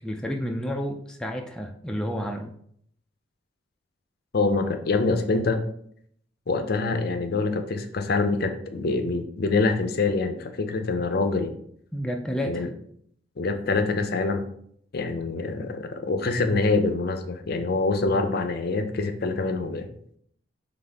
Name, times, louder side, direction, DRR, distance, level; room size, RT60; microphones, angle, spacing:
voice 1, 0.0-2.6 11.9-12.7, equal, 5° left, 2 dB, 0.3 m, -30 dB
voice 2, 4.3-5.6 6.5-11.5 12.4-12.7 13.4-14.4 14.9-19.9, left 3 dB, 55° left, 7 dB, 0.5 m, -25 dB
4.0 x 3.4 x 3.4 m, 0.66 s
head